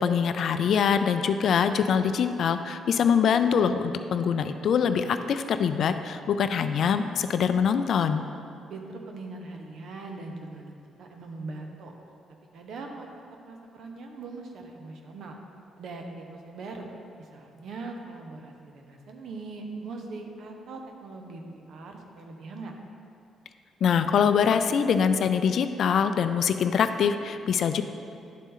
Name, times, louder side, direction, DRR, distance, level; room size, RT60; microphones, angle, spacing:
voice 1, 0.0-8.2 23.8-27.8, left 7 dB, 65° left, 10 dB, 0.3 m, -24 dB
voice 2, 8.7-11.9 12.5-13.2 13.4-15.4 15.8-16.9 17.2-22.7, right 3 dB, 70° right, 2 dB, 0.9 m, -41 dB
10.5 x 4.1 x 3.8 m, 2.5 s
supercardioid pair, 70°, 0 cm